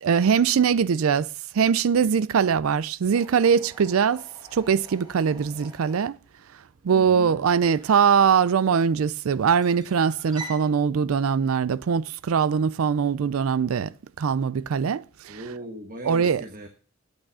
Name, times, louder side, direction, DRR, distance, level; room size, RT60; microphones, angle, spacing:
voice 1, 0.0-1.3 1.5-4.2 4.5-6.2 6.8-13.9 14.2-15.4 16.1-16.4, right 6 dB, 90° right, 0.4 m, -22 dB
sound 1, 3.1-10.7, right 2 dB, 20° right, 3.6 m, -46 dB
voice 2, 6.9-7.4 15.3-16.7, right 1 dB, 45° right, 1.3 m, -39 dB
9.0 x 8.8 x 5.5 m
head